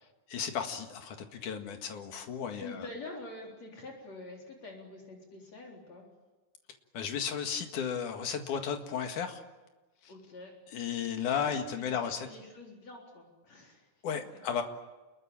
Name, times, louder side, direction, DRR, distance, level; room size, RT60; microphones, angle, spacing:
voice 1, 0.3-2.9 6.9-9.4 10.7-12.3 14.0-14.6, left 7 dB, 85° left, 5 dB, 3.4 m, -34 dB
voice 2, 2.6-6.0 10.1-10.5 11.3-13.9, left 2 dB, 60° left, 0 dB, 5.1 m, -46 dB
29.0 x 21.5 x 8.9 m, 1.2 s
omnidirectional pair, 3.5 m